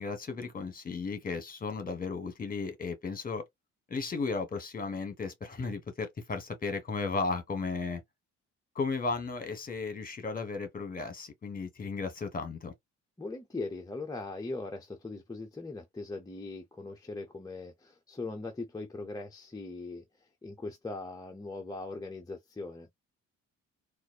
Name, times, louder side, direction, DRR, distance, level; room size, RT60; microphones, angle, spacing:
voice 1, 0.0-3.4 3.9-8.0 8.7-12.7, left 4 dB, 30° left, 1.3 m, -35 dB
voice 2, 13.2-22.9, left 3 dB, 10° left, 0.7 m, -40 dB
3.9 x 2.5 x 2.3 m
cardioid pair, 90°, 30 cm